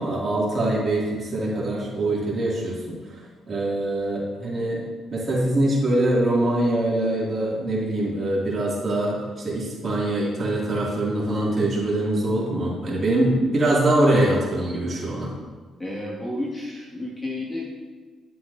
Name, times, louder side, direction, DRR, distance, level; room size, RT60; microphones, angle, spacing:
voice 1, 0.0-3.0 3.5-4.8 5.1-15.3, right 1 dB, 40° right, -5 dB, 2.6 m, -23 dB
voice 2, 15.8-17.7, left 1 dB, 20° left, -4 dB, 2.1 m, -31 dB
10.5 x 7.5 x 2.8 m, 1.5 s
cardioid pair, 90°, 0 cm